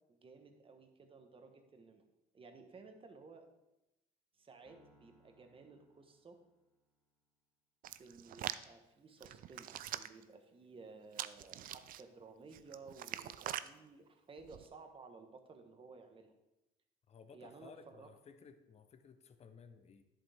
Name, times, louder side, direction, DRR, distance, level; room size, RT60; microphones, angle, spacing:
voice 1, 0.1-2.0 2.3-3.5 4.4-6.4 8.0-16.3 17.3-18.1, right 4 dB, 30° right, 5 dB, 1.3 m, -56 dB
Piano, 4.6-7.1, equal, 5° right, 2.3 m, -70 dB
Hands, 7.8-8.6 9.2-10.2 11.1-12.0 12.5-13.7 14.4-14.7, right 12 dB, 55° right, 0.4 m, -43 dB
voice 2, 17.1-20.0, left 6 dB, 40° left, 9 dB, 0.8 m, -58 dB
10.5 x 7.6 x 3.5 m, 0.95 s
cardioid pair, 110°, 17 cm